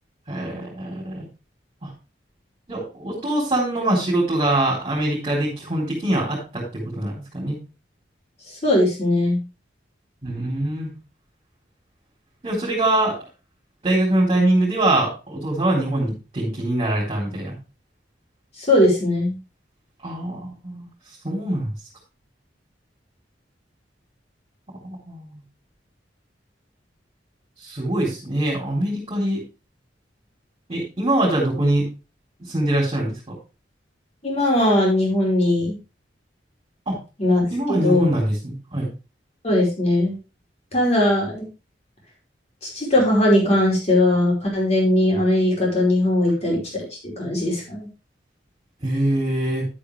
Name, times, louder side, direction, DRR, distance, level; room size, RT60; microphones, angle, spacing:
voice 1, 0.3-1.2 1.8-1.9 2.7-7.6 10.2-10.9 12.4-13.2 13.8-17.5 20.0-20.9 21.2-21.7 24.8-25.4 27.6-29.4 30.7-31.9 32.4-33.1 36.9-37.0 37.5-38.9 48.8-49.7, right 1 dB, 30° right, -5 dB, 3.8 m, -23 dB
voice 2, 8.6-9.4 18.6-19.3 34.2-35.8 37.2-38.1 39.4-40.2 40.7-41.5 42.6-47.9, left 1 dB, 35° left, -3 dB, 5.0 m, -19 dB
10.5 x 8.4 x 3.3 m, 0.30 s
head